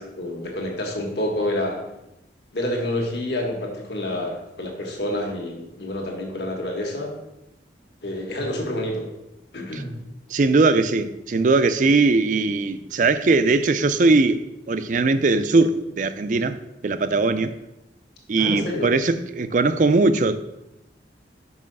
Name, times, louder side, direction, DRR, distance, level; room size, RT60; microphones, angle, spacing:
voice 1, 0.0-1.8 2.5-7.1 8.0-9.1 9.5-10.0 18.4-18.9, left 1 dB, 70° left, 1.6 m, -28 dB
voice 2, 10.3-14.4 14.7-16.6 16.8-17.5 18.3-20.4, right 3 dB, 45° right, 0.4 m, -20 dB
5.6 x 5.5 x 5.3 m
head